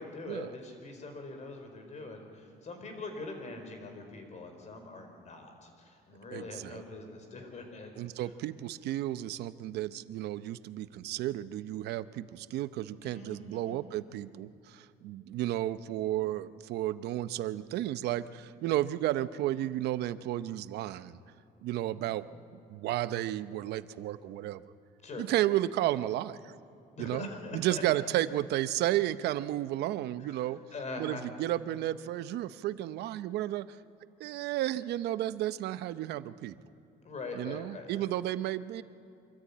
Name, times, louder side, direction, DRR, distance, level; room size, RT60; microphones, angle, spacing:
voice 1, 0.0-7.9 13.0-13.8 21.9-22.1 25.0-25.2 26.9-27.8 30.7-31.2 37.0-38.1, left 3 dB, 45° left, 5 dB, 4.7 m, -43 dB
voice 2, 6.3-6.8 8.0-21.2 21.6-22.3 22.7-24.6 25.2-26.6 27.0-30.6 31.0-33.8 34.2-36.5 37.3-38.8, right 14 dB, 80° right, 14 dB, 0.8 m, -33 dB
25.5 x 14.0 x 8.6 m, 2.7 s
cardioid pair, 110°, 17 cm